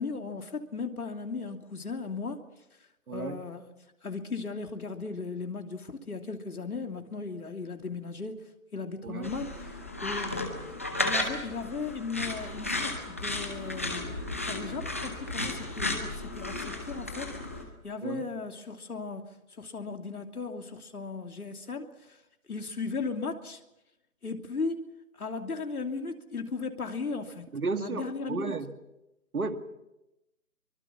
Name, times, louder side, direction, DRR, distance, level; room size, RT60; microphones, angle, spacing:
voice 1, 0.0-2.4 3.1-3.7 4.0-8.4 8.7-9.5 10.0-10.5 11.0-17.4 17.8-19.3 19.6-22.2 22.5-23.6 24.2-24.9 25.2-27.5 27.8-28.6, left 4 dB, 90° left, 5 dB, 3.0 m, -36 dB
voice 2, 3.1-3.4 9.0-9.3 18.0-18.3 27.5-28.8 29.3-29.6, right 4 dB, 80° right, 8 dB, 2.2 m, -33 dB
sound 1, 9.2-17.6, left 2 dB, 10° left, 0.8 m, -34 dB
24.0 x 24.0 x 5.9 m, 0.93 s
hypercardioid pair, 170°, 43 cm